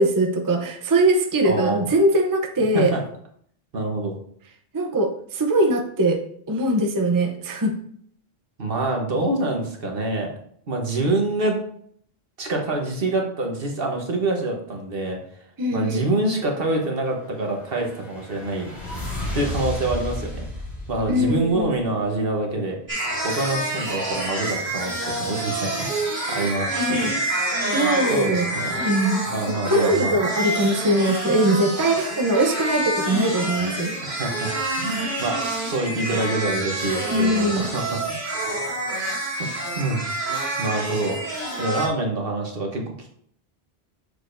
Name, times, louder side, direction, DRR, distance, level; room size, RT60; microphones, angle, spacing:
voice 1, 0.0-2.9 4.7-6.2 6.5-7.7 15.6-16.1 21.1-21.8 26.7-27.1 27.7-28.5 28.8-34.1 37.1-37.7, right 1 dB, 25° right, 3 dB, 0.6 m, -21 dB
voice 2, 1.4-1.9 2.7-3.0 3.7-4.2 8.6-10.3 10.7-11.6 12.4-15.2 15.7-18.7 19.3-20.4 20.9-22.8 23.2-26.0 26.3-27.1 28.1-28.8 29.3-30.1 34.0-38.0 39.8-40.0 40.6-41.2 41.6-43.1, right 2 dB, 65° right, 1 dB, 1.4 m, -26 dB
sound 1, 17.2-22.1, equal, 80° left, 2.6 m, -33 dB
sound 2, 22.9-41.9, right 1 dB, 45° right, 2.3 m, -27 dB
6.6 x 6.6 x 2.6 m, 0.64 s
omnidirectional pair, 1.1 m